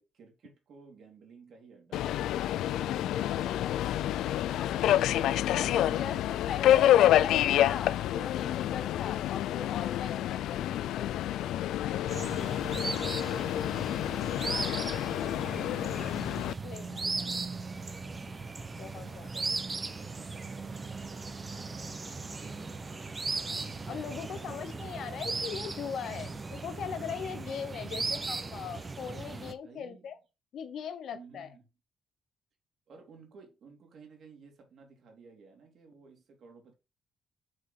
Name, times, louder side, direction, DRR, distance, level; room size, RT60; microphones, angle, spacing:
voice 1, 0.0-3.5 3.8-5.1 5.9-6.4 12.8-13.5 14.2-18.3 18.9-23.4 24.3-24.6 29.6-30.1 31.1-31.7 32.9-36.7, right 4 dB, 60° right, 2.9 m, -55 dB
Subway metro underground, 1.9-16.5, left 12 dB, 85° left, 0.3 m, -28 dB
voice 2, 3.3-3.6 5.4-11.5 16.6-17.3 18.8-19.3 23.8-30.2 30.5-31.5, left 7 dB, 70° left, 1.0 m, -39 dB
sound 1, 12.1-29.5, right 3 dB, 30° right, 1.0 m, -38 dB
6.5 x 3.8 x 5.9 m
cardioid pair, 90°, 0 cm